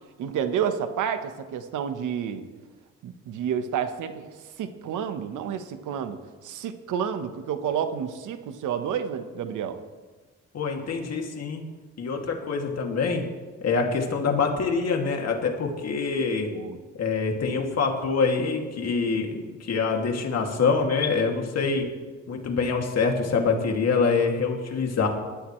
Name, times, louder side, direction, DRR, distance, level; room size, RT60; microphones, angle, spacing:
voice 1, 0.2-2.4 3.0-4.3 4.6-9.8 16.5-16.8, right 8 dB, 80° right, 9 dB, 1.2 m, -30 dB
voice 2, 10.5-11.6 12.0-13.2 13.6-16.5 17.0-21.9 22.3-25.1, left 4 dB, 55° left, 2 dB, 2.5 m, -25 dB
19.5 x 13.0 x 3.2 m, 1.3 s
cardioid pair, 90°, 30 cm